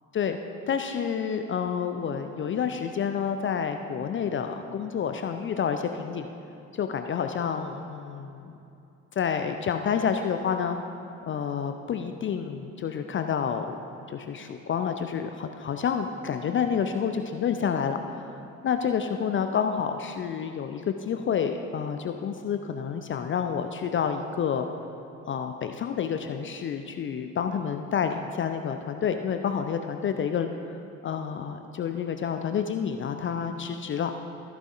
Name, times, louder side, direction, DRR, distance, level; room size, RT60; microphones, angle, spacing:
voice 1, 0.7-6.3 6.7-8.5 9.1-10.8 11.3-13.7 14.1-24.7 25.3-30.8 31.0-34.1, left 7 dB, 30° left, 7 dB, 0.5 m, -29 dB
15.0 x 8.2 x 2.5 m, 2.7 s
figure-of-eight pair, 45°, 41 cm